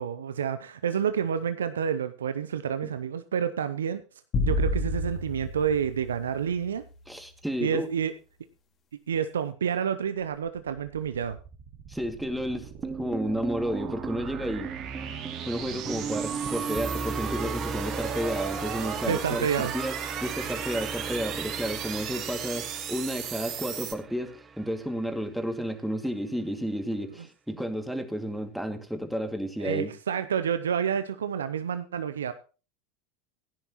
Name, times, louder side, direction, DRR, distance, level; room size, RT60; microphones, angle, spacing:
voice 1, 0.0-4.0 4.4-6.8 7.6-8.1 9.1-11.4 19.0-19.7 29.6-32.3, right 7 dB, 85° right, 12 dB, 0.6 m, -29 dB
sound 1, 4.3-6.8, left 2 dB, 40° left, 2.3 m, -29 dB
voice 2, 7.1-7.9 11.9-14.7 15.5-29.9, equal, ahead, 5 dB, 2.2 m, -32 dB
sound 2, 10.7-23.9, right 8 dB, 50° right, 2.4 m, -37 dB
sound 3, 12.8-25.0, right 4 dB, 25° right, 1.0 m, -37 dB
16.5 x 10.5 x 3.0 m, 0.34 s
hypercardioid pair, 85°, 0 cm